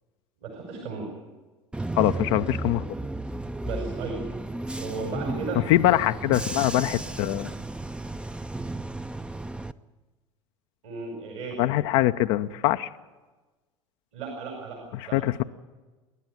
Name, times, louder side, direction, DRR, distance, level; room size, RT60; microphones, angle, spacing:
voice 1, 0.4-1.1 3.6-4.2 4.8-5.6 10.8-11.6 14.1-14.8 15.1-15.2, right 4 dB, 70° right, 1 dB, 5.2 m, -35 dB
Bus / Engine, 1.7-9.7, right 2 dB, 5° right, 0.7 m, -34 dB
voice 2, 2.0-2.8 5.7-7.5 11.6-12.9 14.9-15.4, left 14 dB, 55° left, 8 dB, 0.7 m, -23 dB
28.5 x 11.5 x 9.5 m, 1.2 s
figure-of-eight pair, 70°, 16 cm